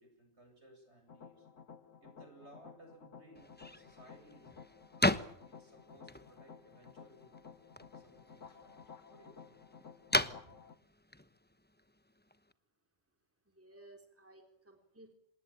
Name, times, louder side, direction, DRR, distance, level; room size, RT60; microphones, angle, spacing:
voice 1, 0.0-1.5 2.0-4.6 5.4-7.4 7.9-9.6 10.2-10.6, right 1 dB, 55° right, 5 dB, 8.5 m, -60 dB
sound 1, 1.1-10.7, left 6 dB, 75° left, 1.9 m, -55 dB
sound 2, 3.3-12.5, left 1 dB, 10° left, 1.0 m, -39 dB
voice 2, 13.5-15.1, right 2 dB, 10° right, 4 dB, 3.6 m, -58 dB
27.0 x 20.0 x 8.9 m, 0.69 s
omnidirectional pair, 1.3 m